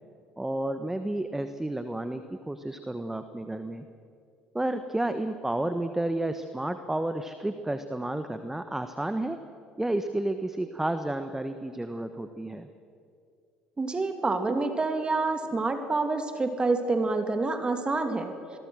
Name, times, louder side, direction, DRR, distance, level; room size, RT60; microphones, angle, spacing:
voice 1, 0.4-3.8 4.5-9.4 9.8-12.7, right 1 dB, 10° right, 9 dB, 1.3 m, -31 dB
voice 2, 13.8-18.3, right 3 dB, 25° right, 6 dB, 2.7 m, -27 dB
28.0 x 21.5 x 6.4 m, 2.4 s
hypercardioid pair, 60°, 4 cm